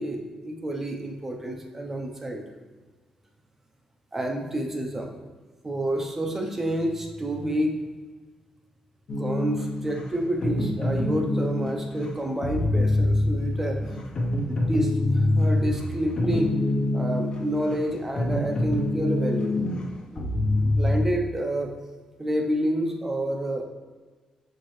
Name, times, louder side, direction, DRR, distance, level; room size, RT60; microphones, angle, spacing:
voice 1, 0.0-2.4 4.1-5.1 5.6-7.7 9.2-13.8 14.5-16.6 16.9-19.6 20.1-20.2 20.5-21.7 22.2-23.6, right 1 dB, 15° right, 2 dB, 0.7 m, -29 dB
sound 1, 9.1-21.1, left 1 dB, 45° left, 0.7 m, -26 dB
6.5 x 4.5 x 3.2 m, 1.3 s
wide cardioid pair, 155°, 2 cm